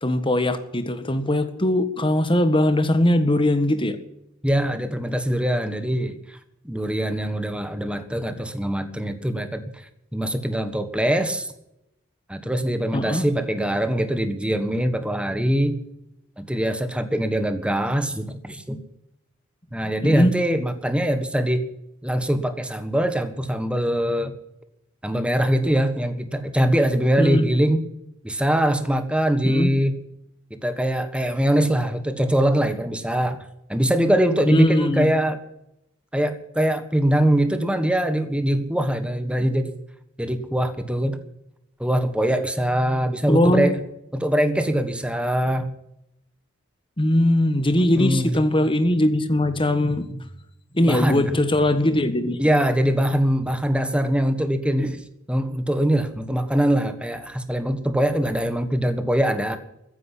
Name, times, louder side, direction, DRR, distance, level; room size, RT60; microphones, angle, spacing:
voice 1, 0.0-4.0 12.9-13.2 20.0-20.3 27.2-27.5 29.4-29.7 34.5-35.1 43.3-43.7 47.0-50.3 50.7-52.4, left 1 dB, 25° left, 10 dB, 1.5 m, -20 dB
voice 2, 4.4-6.4 6.6-9.6 10.1-11.5 12.3-15.8 16.4-18.8 19.7-21.7 22.0-24.3 25.0-27.8 28.2-30.0 30.6-33.4 33.7-35.4 36.1-39.8 40.2-41.2 41.8-43.8 44.1-45.7 47.8-48.4 50.9-51.4 52.4-55.0 55.3-59.6, right 1 dB, 5° right, 9 dB, 1.4 m, -22 dB
14.5 x 10.0 x 9.8 m, 0.81 s
head